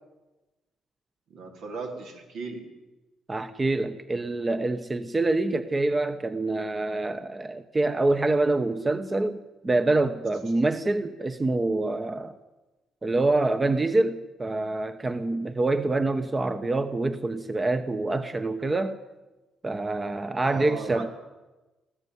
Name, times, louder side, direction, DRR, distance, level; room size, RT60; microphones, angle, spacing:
voice 1, 1.3-2.7 20.4-21.1, right 4 dB, 80° right, 4.3 m, -36 dB
voice 2, 3.3-12.3 13.0-19.0 19.6-21.1, right 2 dB, 25° right, 1.0 m, -26 dB
19.5 x 14.5 x 9.5 m
cardioid pair, 90°, 0 cm